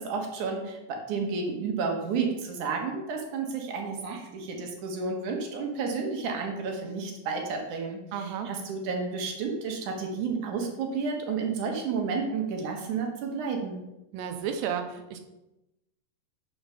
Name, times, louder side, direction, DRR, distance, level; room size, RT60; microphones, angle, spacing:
voice 1, 0.0-13.8, right 4 dB, 60° right, 2 dB, 2.2 m, -31 dB
voice 2, 8.1-8.5 14.1-15.2, right 8 dB, 85° right, 6 dB, 2.8 m, -32 dB
7.0 x 6.2 x 5.7 m, 0.94 s
omnidirectional pair, 4.9 m